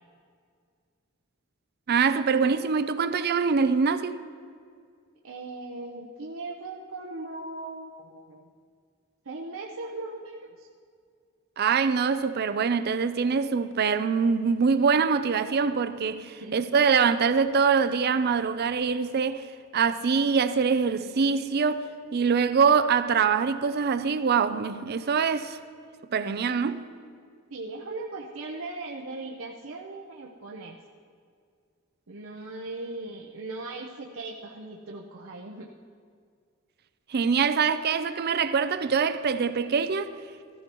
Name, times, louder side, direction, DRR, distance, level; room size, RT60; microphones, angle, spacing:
voice 1, 1.9-4.2 11.6-19.5 19.7-21.9 22.1-25.6 26.1-26.8 37.1-40.1, right 5 dB, 50° right, 0.5 m, -24 dB
voice 2, 5.2-8.5 9.2-10.7 16.1-16.6 27.5-30.8 32.1-35.7, right 2 dB, 75° right, 0.8 m, -38 dB
15.0 x 14.5 x 3.0 m
head